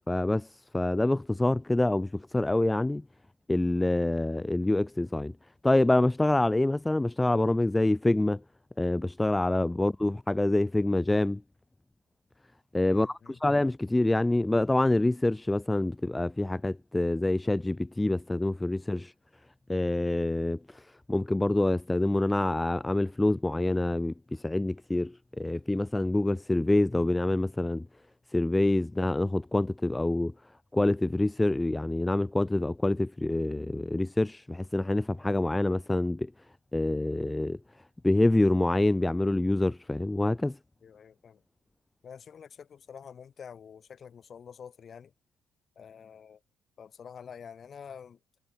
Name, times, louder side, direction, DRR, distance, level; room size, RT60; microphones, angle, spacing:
voice 1, 0.1-0.5 0.7-3.0 3.5-5.3 5.6-8.4 8.8-11.4 12.7-19.1 19.7-20.8 21.1-27.8 28.3-30.3 30.7-36.3 36.7-37.6 38.0-40.6, left 2 dB, 10° left, 2.5 m, -26 dB
voice 2, 12.9-13.4 40.8-41.4 42.0-45.1 45.8-46.4 46.8-48.2, left 7 dB, 35° left, 6.5 m, -47 dB
cardioid pair, 140°, 0 cm